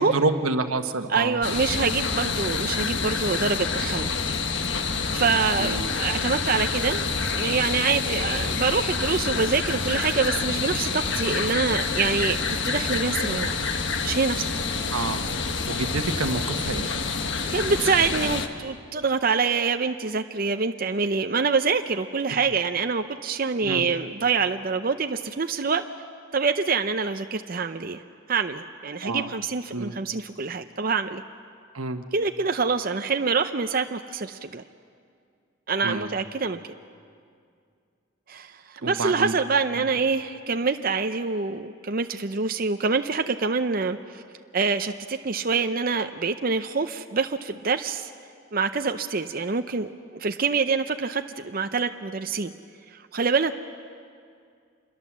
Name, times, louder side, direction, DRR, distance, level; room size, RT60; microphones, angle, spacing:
voice 1, 0.0-1.4 5.5-5.9 14.9-15.2 15.7-16.9 23.6-23.9 29.0-29.3 29.7-29.9 31.7-32.0 35.8-36.1 38.8-39.4 39.8-39.9, right 3 dB, 90° right, 8 dB, 1.3 m, -28 dB
voice 2, 1.1-4.1 5.1-7.0 7.3-13.6 14.0-14.5 17.5-25.8 26.3-28.0 28.3-31.2 32.1-34.6 35.7-36.6 38.3-44.2 44.5-48.1 48.5-52.5 53.1-53.6, right 4 dB, 45° right, 7 dB, 0.6 m, -25 dB
sound 1, 1.4-18.5, left 4 dB, 55° left, 1.3 m, -27 dB
27.0 x 21.5 x 7.4 m, 2.3 s
head